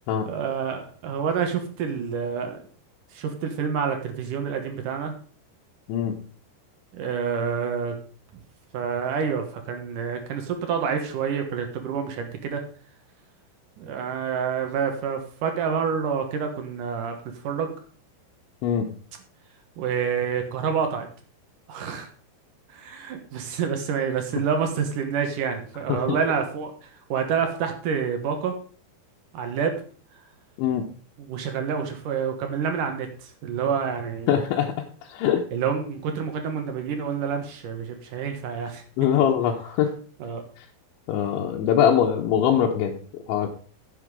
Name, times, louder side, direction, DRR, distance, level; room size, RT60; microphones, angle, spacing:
voice 1, 0.3-2.6 3.1-5.1 6.9-7.9 8.7-12.6 13.8-17.2 17.4-17.7 19.8-21.1 21.7-22.1 22.7-28.5 29.3-29.7 31.3-34.4 35.5-38.8 40.2-40.4, right 6 dB, 65° right, 5 dB, 2.2 m, -28 dB
voice 2, 34.3-35.5 39.0-39.9 40.6-40.7 41.1-43.5, left 9 dB, 85° left, 0 dB, 3.3 m, -23 dB
10.0 x 7.9 x 4.9 m, 0.41 s
omnidirectional pair, 5.3 m